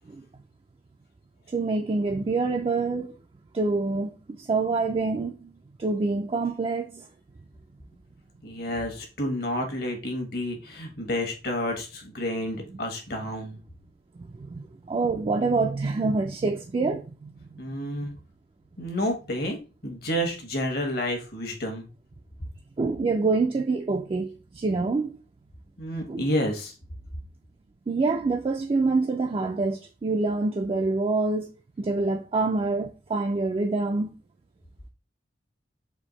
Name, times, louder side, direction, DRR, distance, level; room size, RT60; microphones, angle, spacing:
voice 1, 1.5-3.1 3.5-5.5 5.8-7.1 14.2-17.3 22.8-25.1 26.1-26.2 27.9-31.5 31.8-34.1, right 3 dB, 30° right, 0.3 m, -26 dB
voice 2, 8.4-13.6 17.6-18.1 18.8-21.9 25.8-26.7, equal, 60° left, 1.2 m, -30 dB
4.4 x 2.6 x 3.9 m
head